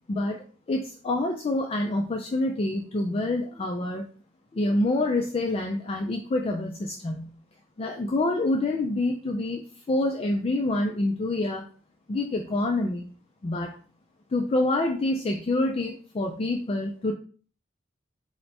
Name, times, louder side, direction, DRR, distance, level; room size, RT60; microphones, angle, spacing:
voice 1, 0.1-4.0 4.5-7.3 7.8-9.6 9.9-11.7 12.1-13.1 13.4-13.8 14.3-17.1, left 2 dB, 30° left, 3 dB, 0.3 m, -27 dB
4.3 x 2.2 x 4.1 m, 0.42 s
head